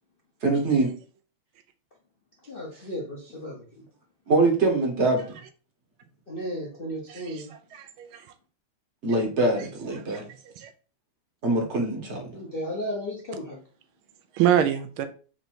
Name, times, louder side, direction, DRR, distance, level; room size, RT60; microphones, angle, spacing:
voice 1, 0.4-0.9 4.3-5.4 9.0-10.2 11.4-12.3, right 2 dB, 40° right, 1.1 m, -23 dB
voice 2, 2.5-3.8 6.3-7.5 12.3-13.6, equal, 45° left, 0.7 m, -34 dB
voice 3, 7.1-7.5 7.7-8.2 10.1-10.2 10.6-10.7 14.3-15.1, right 10 dB, 80° right, 1.4 m, -25 dB
4.4 x 2.7 x 4.3 m
omnidirectional pair, 2.3 m